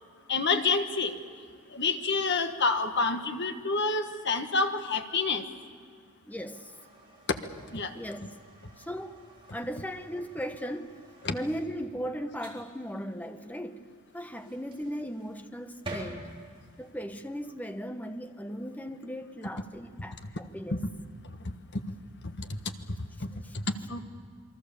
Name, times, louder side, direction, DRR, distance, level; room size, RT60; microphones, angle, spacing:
voice 1, 0.3-1.2 1.7-5.4 7.3-7.4 7.7-7.9 11.2-11.3 20.7-20.8 22.4-22.5 23.2-24.0, left 4 dB, 55° left, 1.4 m, -28 dB
voice 2, 6.3-6.7 7.9-8.5 8.8-9.2 9.5-11.0 11.3-16.3 16.8-20.8, equal, 5° left, 1.0 m, -37 dB
sound 1, 6.5-16.9, right 2 dB, 25° right, 4.0 m, -49 dB
28.0 x 22.5 x 7.0 m
head